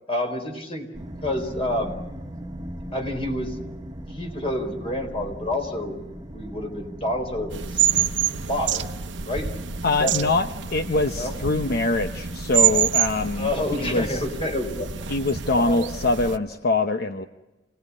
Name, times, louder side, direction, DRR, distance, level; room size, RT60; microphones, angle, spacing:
voice 1, 0.1-0.9 1.2-2.0 2.9-3.6 4.1-6.0 6.3-7.8 8.5-8.9 9.2-9.6 10.0-10.2 11.1-11.3 13.4-14.9 15.5-15.9, left 1 dB, 35° left, 4 dB, 4.4 m, -28 dB
sound 1, 0.9-14.8, equal, 20° right, 1.5 m, -40 dB
sound 2, 7.5-16.4, right 9 dB, 80° right, 0.9 m, -27 dB
voice 2, 9.8-13.5 13.8-14.2 15.1-17.3, left 2 dB, 60° left, 7 dB, 0.9 m, -24 dB
28.5 x 19.0 x 9.8 m, 1.1 s
head